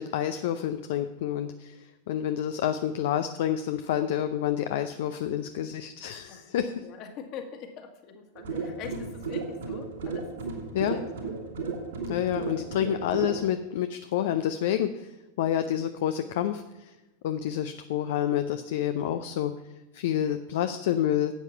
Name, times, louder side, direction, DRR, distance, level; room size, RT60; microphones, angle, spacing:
voice 1, 0.0-6.7 10.7-11.0 12.1-15.1 15.4-16.9 17.2-19.5 19.9-21.4, left 10 dB, 55° left, 9 dB, 0.5 m, -28 dB
voice 2, 6.3-10.4 10.8-11.5, left 7 dB, 40° left, 5 dB, 1.8 m, -44 dB
sound 1, 8.4-13.4, right 4 dB, 65° right, 2.5 m, -34 dB
11.5 x 8.2 x 5.7 m, 1.1 s
figure-of-eight pair, 90°, 0 cm